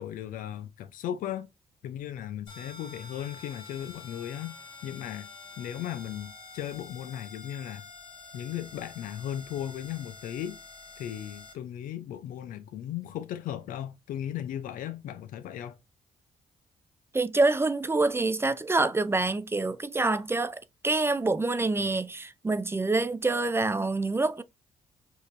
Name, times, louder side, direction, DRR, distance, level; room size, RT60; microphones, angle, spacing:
voice 1, 0.0-1.5 1.8-4.6 4.8-5.3 5.6-7.8 8.3-10.6 11.0-15.8, left 10 dB, 80° left, 0.5 m, -36 dB
sound 1, 2.5-11.5, left 3 dB, 40° left, 1.6 m, -48 dB
voice 2, 17.1-24.4, right 3 dB, 15° right, 0.3 m, -26 dB
4.6 x 2.8 x 2.5 m
cardioid pair, 70°, 14 cm